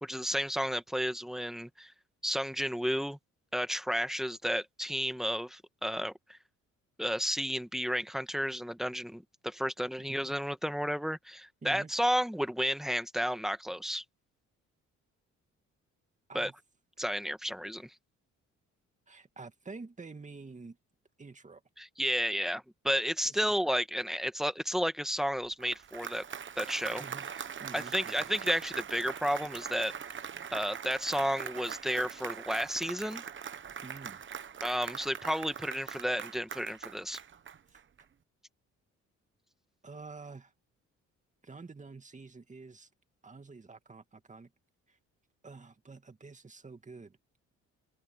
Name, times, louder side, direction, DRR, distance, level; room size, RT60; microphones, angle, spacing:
voice 1, 0.0-1.9 2.2-3.2 3.5-6.4 7.0-14.0 16.3-16.5 17.0-17.9 21.8-26.2 26.6-27.0 27.7-29.9 30.5-33.2 34.6-37.2, equal, ahead, 1.6 m, -32 dB
voice 2, 10.0-10.3 11.6-11.9 16.3-16.5 19.1-20.8 21.2-21.6 23.2-23.5 27.0-27.3 27.6-28.3 33.8-34.2 37.7-37.8 39.8-40.5 41.4-42.9 43.2-44.5 44.9-45.0 45.4-47.2, right 4 dB, 25° right, 2.4 m, -48 dB
Applause, 25.4-38.0, right 7 dB, 40° right, 1.1 m, -42 dB
open air
cardioid pair, 90°, 30 cm